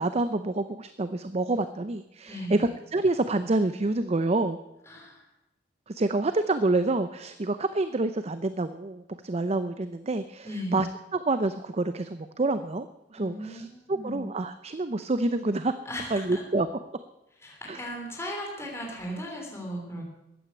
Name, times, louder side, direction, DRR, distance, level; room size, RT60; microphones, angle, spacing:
voice 1, 0.0-4.6 5.9-12.9 13.1-15.7 16.1-16.7 17.7-17.9, right 2 dB, 35° right, 11 dB, 0.6 m, -27 dB
voice 2, 2.3-2.6 4.9-5.2 10.4-10.8 13.2-14.2 15.8-16.4 17.4-20.0, equal, 15° left, -1 dB, 3.3 m, -37 dB
14.5 x 9.4 x 8.3 m, 0.92 s
head